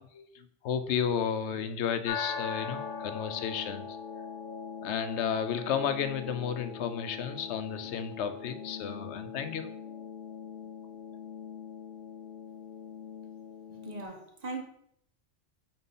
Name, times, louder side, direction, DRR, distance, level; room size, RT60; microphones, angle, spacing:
voice 1, 0.0-3.8 4.8-10.1, left 7 dB, 80° left, 0.9 m, -33 dB
sound 1, 2.1-14.1, left 6 dB, 55° left, 0.7 m, -41 dB
voice 2, 13.7-14.6, right 3 dB, 40° right, 0.9 m, -39 dB
4.4 x 4.0 x 5.4 m
omnidirectional pair, 1.2 m